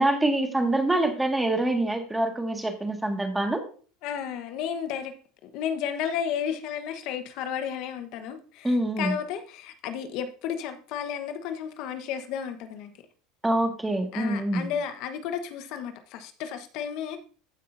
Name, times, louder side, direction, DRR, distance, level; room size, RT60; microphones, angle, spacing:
voice 1, 0.0-3.6 8.6-9.1 13.4-14.7, right 1 dB, 10° right, 1.8 m, -25 dB
voice 2, 4.0-5.1 5.4-12.9 14.1-17.2, left 8 dB, 60° left, 1.1 m, -33 dB
15.0 x 5.5 x 2.6 m
supercardioid pair, 115°, 0 cm